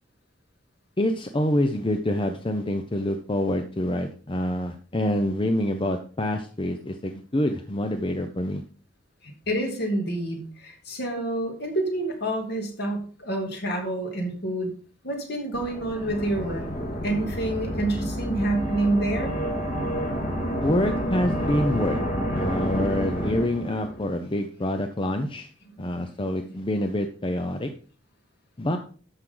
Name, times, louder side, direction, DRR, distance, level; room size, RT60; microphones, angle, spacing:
voice 1, 1.0-8.6 20.6-22.0 22.3-25.5 25.8-27.7 28.6-28.8, left 1 dB, 25° left, 6 dB, 0.7 m, -26 dB
voice 2, 9.5-14.7 15.0-16.7 17.0-19.3, right 1 dB, 60° left, 2 dB, 2.8 m, -28 dB
sound 1, 15.5-24.0, equal, 45° left, 2.1 m, -29 dB
13.0 x 6.2 x 3.9 m, 0.41 s
head